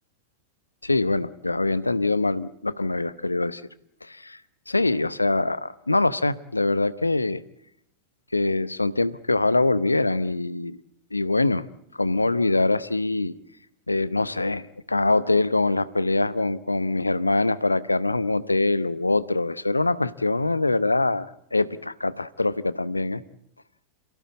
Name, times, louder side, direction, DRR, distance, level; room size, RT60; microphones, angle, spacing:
voice 1, 0.8-3.6 4.0-4.4 4.7-7.4 8.3-10.8 11.1-11.7 12.0-13.3 13.9-23.2, left 2 dB, 80° left, 17 dB, 0.9 m, -24 dB
28.0 x 16.5 x 8.7 m, 0.74 s
figure-of-eight pair, 90°, 0 cm